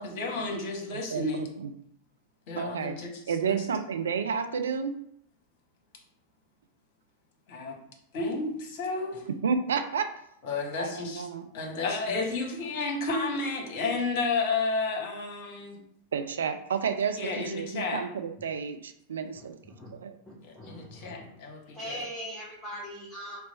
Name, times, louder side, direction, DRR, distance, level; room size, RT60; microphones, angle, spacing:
voice 1, 0.0-1.5 2.5-3.1 3.4-3.6 7.5-7.7 8.1-9.2 10.4-11.3 11.5-15.8 17.2-18.0 20.4-22.0, left 3 dB, 45° left, 1 dB, 0.9 m, -31 dB
voice 2, 0.9-1.7 2.6-3.0 3.3-4.9 9.4-10.1 10.8-11.5 16.1-19.6 19.9-20.2, right 6 dB, 65° right, 7 dB, 0.3 m, -31 dB
voice 3, 20.3-21.4 21.7-23.4, equal, 10° left, -7 dB, 0.9 m, -40 dB
3.1 x 2.2 x 3.9 m, 0.71 s
figure-of-eight pair, 90°, 0 cm